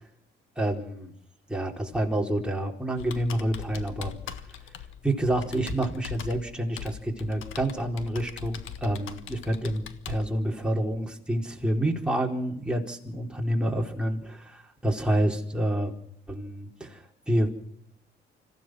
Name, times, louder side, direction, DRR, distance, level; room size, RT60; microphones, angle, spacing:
voice 1, 0.6-1.1 1.5-4.2 5.0-15.9 16.3-17.5, right 1 dB, 5° right, 0 dB, 4.3 m, -28 dB
Computer keyboard, 3.0-10.2, left 9 dB, 80° left, 1.6 m, -41 dB
26.5 x 15.5 x 6.3 m, 0.72 s
cardioid pair, 90°, 20 cm